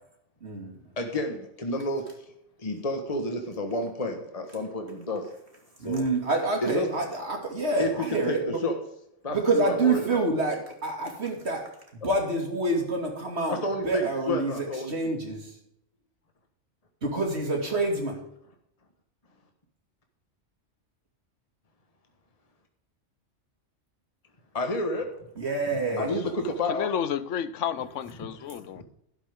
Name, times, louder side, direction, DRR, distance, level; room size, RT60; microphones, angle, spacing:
voice 1, 0.4-0.7 5.8-8.6 9.3-11.7 12.0-15.5 17.0-18.2 25.4-26.3, right 2 dB, 60° right, 2 dB, 2.8 m, -27 dB
voice 2, 1.0-2.0 2.6-5.2 5.8-6.0 6.6-6.9 7.8-8.7 9.2-10.2 13.5-14.9 24.5-25.0 26.0-26.9, left 1 dB, 30° left, 4 dB, 1.6 m, -30 dB
voice 3, 25.9-28.8, left 8 dB, 80° left, 15 dB, 1.1 m, -32 dB
12.0 x 11.5 x 3.7 m, 0.74 s
omnidirectional pair, 1.3 m